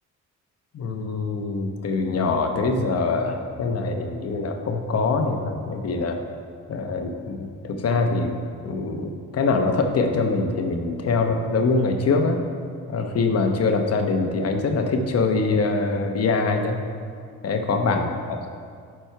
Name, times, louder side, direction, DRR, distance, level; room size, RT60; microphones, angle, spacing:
voice 1, 0.7-6.2 6.7-8.4 8.6-12.4 12.9-16.8 17.4-18.5, left 3 dB, 55° left, 4 dB, 1.0 m, -24 dB
11.5 x 4.4 x 4.6 m, 2.2 s
cardioid pair, 90°, 30 cm